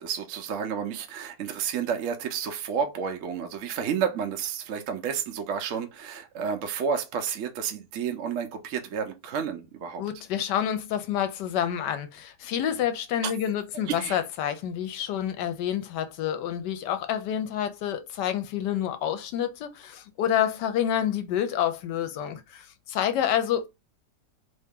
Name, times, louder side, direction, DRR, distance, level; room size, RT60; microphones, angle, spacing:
voice 1, 0.0-10.0 13.2-13.3 13.7-14.2, right 7 dB, 60° right, 0.8 m, -31 dB
voice 2, 10.0-23.7, left 10 dB, 75° left, 1.2 m, -28 dB
3.1 x 2.8 x 3.5 m
omnidirectional pair, 1.9 m